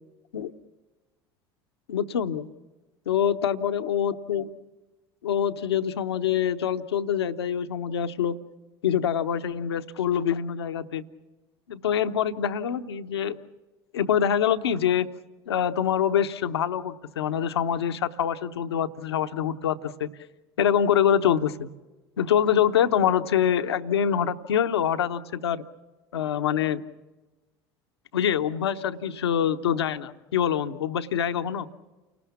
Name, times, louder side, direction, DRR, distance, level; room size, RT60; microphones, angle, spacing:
voice 1, 1.9-2.5 3.1-4.5 5.2-8.4 8.8-11.0 11.7-13.4 13.9-15.1 15.5-20.1 20.6-21.7 22.2-25.6 26.1-26.8 28.1-31.7, left 9 dB, 85° left, 9 dB, 0.9 m, -25 dB
29.5 x 19.5 x 7.2 m, 1.2 s
hypercardioid pair, 80°, 13 cm